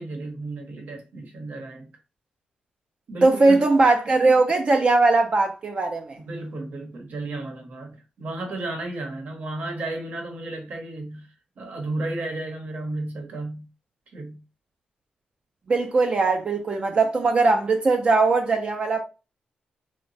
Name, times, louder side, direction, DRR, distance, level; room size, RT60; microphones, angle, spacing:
voice 1, 0.0-1.9 3.1-3.7 6.2-11.3 11.6-13.7 14.1-14.4, right 2 dB, 70° right, 0.8 m, -33 dB
voice 2, 3.2-6.2 15.7-19.0, right 3 dB, 45° right, 0.4 m, -20 dB
2.9 x 2.1 x 2.6 m
cardioid pair, 95°, 3 cm